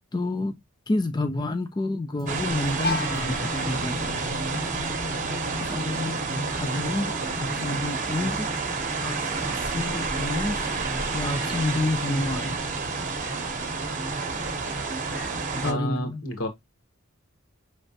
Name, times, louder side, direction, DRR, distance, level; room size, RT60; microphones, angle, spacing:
voice 1, 0.1-0.6 0.9-4.4 5.5-6.2 6.6-8.5 9.0-10.8 11.1-12.6 15.6-16.2, left 2 dB, 20° left, 0.4 m, -29 dB
sound 1, 2.2-2.3 2.7-2.8 3.1-3.2 3.6-15.6, right 2 dB, 15° right, 0.7 m, -40 dB
sound 2, 2.3-15.7, right 4 dB, 40° right, 0.9 m, -29 dB
sound 3, 2.8-8.6, left 2 dB, 45° left, 0.9 m, -37 dB
voice 2, 15.6-16.5, left 1 dB, 75° left, 1.3 m, -30 dB
5.6 x 3.2 x 2.6 m
head